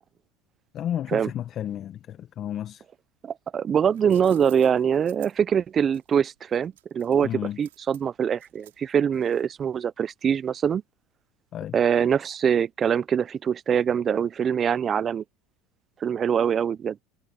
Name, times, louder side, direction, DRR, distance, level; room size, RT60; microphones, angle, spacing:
voice 1, 0.7-2.8 7.2-7.6 11.5-11.8, left 10 dB, 45° left, 1.4 m, -32 dB
voice 2, 3.2-7.3 7.6-10.8 11.7-15.2 16.0-17.0, right 8 dB, 35° right, 0.6 m, -23 dB
sound 1, 3.7-9.7, right 15 dB, 85° right, 6.0 m, -53 dB
hypercardioid pair, 85°, 0 cm